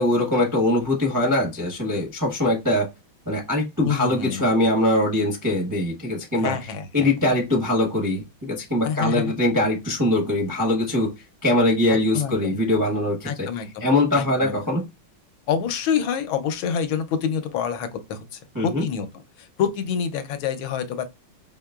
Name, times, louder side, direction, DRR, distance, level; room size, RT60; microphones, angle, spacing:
voice 1, 0.0-2.9 3.3-6.7 6.9-11.1 11.4-13.5 13.8-14.8 18.5-18.8, left 1 dB, 25° right, 0.4 m, -22 dB
voice 2, 3.8-4.4 6.4-7.4 8.8-9.3 11.9-12.6 13.2-13.9 14.1-14.6 15.5-19.1 19.4-21.0, left 7 dB, 80° left, 1.5 m, -27 dB
5.0 x 2.8 x 2.3 m
omnidirectional pair, 2.2 m